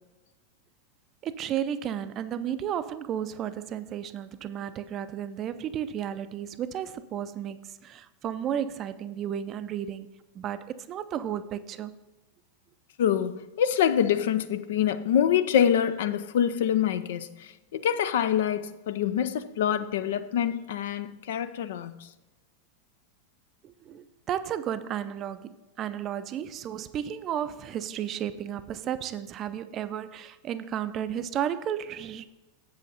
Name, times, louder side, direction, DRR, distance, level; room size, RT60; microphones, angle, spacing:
voice 1, 1.2-10.1 10.4-11.9 23.6-32.3, right 9 dB, 30° right, 0.5 m, -33 dB
voice 2, 13.0-22.1, left 9 dB, 55° left, 0.5 m, -26 dB
8.1 x 7.8 x 4.0 m
figure-of-eight pair, 90°, 0 cm